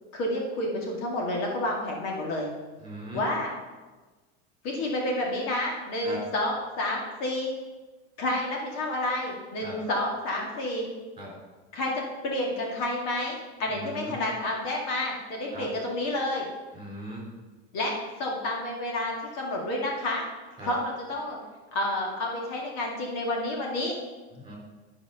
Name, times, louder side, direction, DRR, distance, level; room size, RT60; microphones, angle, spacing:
voice 1, 0.1-2.5 3.1-3.5 4.6-7.5 8.2-10.9 11.7-16.5 17.7-17.9 18.2-20.3 20.6-21.4 21.7-23.9, left 1 dB, 50° left, -1 dB, 2.2 m, -30 dB
voice 2, 2.8-3.2 6.0-6.2 9.6-9.8 11.2-11.3 13.7-14.2 15.5-15.7 16.7-17.2 20.6-20.7 24.3-24.5, right 1 dB, 15° right, -3 dB, 3.7 m, -39 dB
12.5 x 4.9 x 5.5 m, 1.3 s
supercardioid pair, 145°, 33 cm